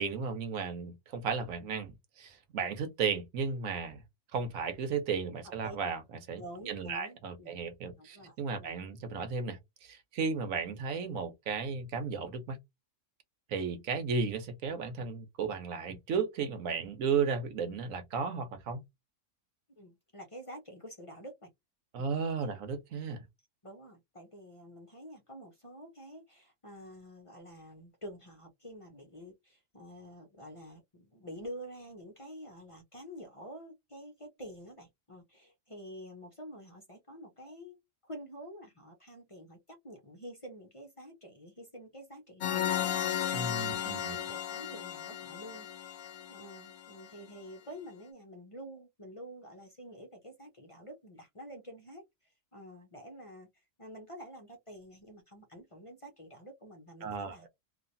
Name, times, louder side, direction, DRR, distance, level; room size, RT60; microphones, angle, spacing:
voice 1, 0.0-4.0 4.3-6.0 6.3-12.6 13.5-18.8 21.9-23.3 43.3-44.2 57.0-57.5, right 5 dB, 90° right, 1.2 m, -34 dB
voice 2, 6.4-7.6 8.0-8.7 19.8-21.5 23.6-37.8 38.0-57.5, equal, 35° left, 0.6 m, -48 dB
sound 1, 42.4-47.1, left 10 dB, 75° left, 1.0 m, -35 dB
3.1 x 2.5 x 2.6 m
omnidirectional pair, 1.3 m